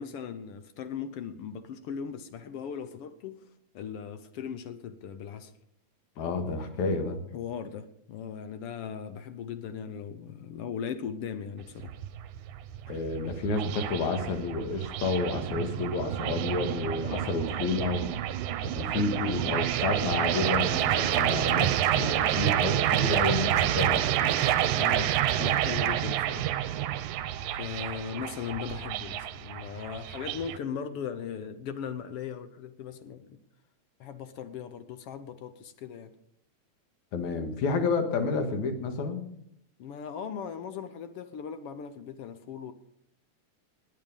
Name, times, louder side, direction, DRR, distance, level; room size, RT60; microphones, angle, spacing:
voice 1, 0.0-3.5 3.7-5.5 7.3-11.9 24.7-26.4 27.6-33.4 34.0-36.1 39.8-42.7, left 7 dB, 65° left, 10 dB, 1.6 m, -38 dB
voice 2, 6.2-7.2 12.9-18.1 18.7-24.3 37.1-39.2, left 3 dB, 80° left, 6 dB, 3.0 m, -30 dB
sound 1, 11.6-30.6, right 12 dB, 85° right, 2.2 m, -28 dB
19.0 x 9.5 x 5.4 m, 0.72 s
omnidirectional pair, 3.3 m